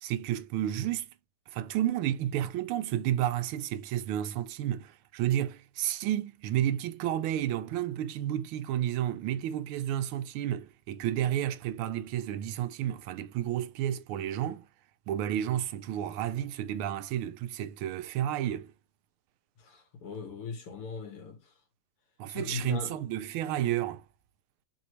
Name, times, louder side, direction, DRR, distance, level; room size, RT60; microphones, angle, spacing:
voice 1, 0.0-1.1 1.5-14.6 15.1-18.7 22.2-24.0, right 11 dB, 80° right, 1.5 m, -31 dB
voice 2, 19.6-21.5 22.3-23.0, left 4 dB, 90° left, 2.5 m, -39 dB
4.7 x 3.0 x 3.0 m
omnidirectional pair, 2.4 m